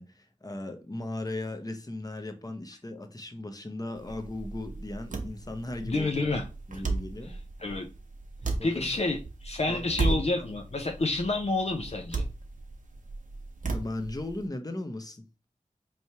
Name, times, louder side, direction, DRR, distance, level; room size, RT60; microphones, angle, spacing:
voice 1, 0.0-6.1 6.7-7.4 8.6-8.9 9.7-10.3 13.6-15.3, left 2 dB, 30° left, 0.8 m, -37 dB
sound 1, 4.0-14.5, right 3 dB, 80° right, 0.8 m, -35 dB
voice 2, 5.8-6.5 7.2-7.3 7.6-7.9 8.6-12.3, left 2 dB, 55° left, 0.5 m, -29 dB
4.4 x 3.1 x 2.8 m
wide cardioid pair, 50°, 13 cm